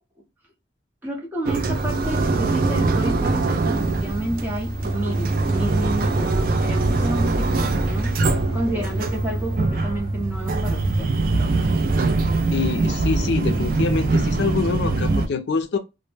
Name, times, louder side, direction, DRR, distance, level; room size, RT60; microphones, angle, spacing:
voice 1, 1.0-11.1, right 1 dB, 10° right, 0.7 m, -30 dB
sound 1, 1.5-15.3, right 3 dB, 50° right, 0.3 m, -22 dB
sound 2, 2.3-12.3, left 1 dB, 25° left, 0.6 m, -35 dB
voice 2, 12.5-15.8, left 4 dB, 65° left, 0.4 m, -25 dB
2.0 x 2.0 x 3.1 m
head